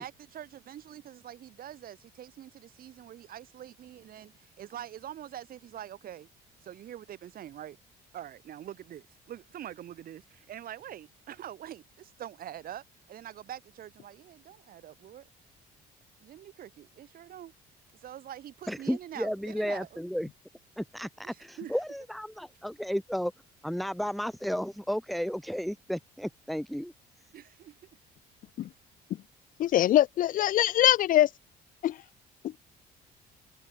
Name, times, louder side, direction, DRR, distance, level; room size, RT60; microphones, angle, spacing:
voice 1, 0.0-6.3 6.6-7.8 8.1-15.3 16.2-17.5 18.0-20.0 21.2-21.8 27.3-27.8, right 11 dB, 60° right, 5.3 m, -44 dB
voice 2, 18.7-20.3 20.8-23.3 23.6-26.9, equal, ahead, 1.5 m, -33 dB
voice 3, 29.6-31.3 31.8-32.0 32.4-32.5, left 13 dB, 55° left, 0.5 m, -23 dB
cardioid pair, 110°, 17 cm